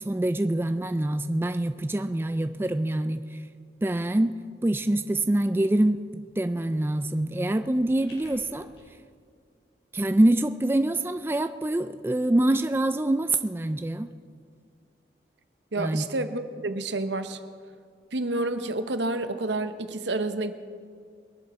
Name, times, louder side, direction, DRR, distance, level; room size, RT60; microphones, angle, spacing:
voice 1, 0.0-3.4 3.8-4.4 4.6-8.7 9.9-14.1 15.8-16.1, right 1 dB, 15° right, 9 dB, 0.3 m, -25 dB
sound 1, 6.9-8.8, left 1 dB, 75° left, 4.9 m, -54 dB
voice 2, 15.7-17.4 18.1-20.5, right 2 dB, 80° right, 10 dB, 0.9 m, -29 dB
22.0 x 11.0 x 4.3 m, 2.2 s
head